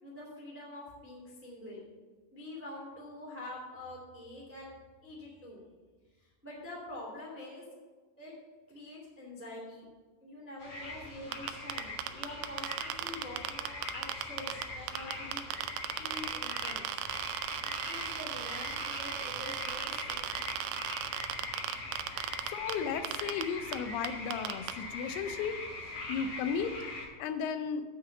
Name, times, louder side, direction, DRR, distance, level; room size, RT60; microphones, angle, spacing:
voice 1, 0.0-1.8 2.3-4.7 5.0-5.6 6.2-7.7 8.2-8.3 8.7-9.9 10.2-15.6 16.0-16.9 17.8-20.5 26.0-26.1, left 1 dB, 5° right, -3 dB, 1.1 m, -46 dB
sound 1, 10.6-27.1, left 2 dB, 50° left, 1.9 m, -42 dB
sound 2, 11.3-14.6 14.9-22.7 23.0-23.4 23.7-23.8 24.0-24.7, right 11 dB, 80° right, 2.4 m, -37 dB
voice 2, 22.5-25.6 26.1-26.7 27.2-27.8, left 6 dB, 85° left, 9 dB, 2.6 m, -34 dB
9.0 x 4.9 x 7.1 m, 1.3 s
omnidirectional pair, 4.5 m